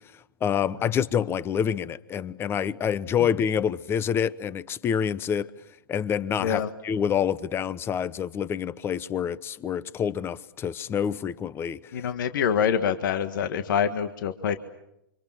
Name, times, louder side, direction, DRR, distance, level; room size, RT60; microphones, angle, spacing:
voice 1, 0.4-5.5 5.9-11.8, left 8 dB, 20° left, 1.0 m, -27 dB
voice 2, 11.9-14.6, left 8 dB, 65° left, 1.6 m, -25 dB
29.0 x 26.0 x 7.3 m
hypercardioid pair, 130°, 11 cm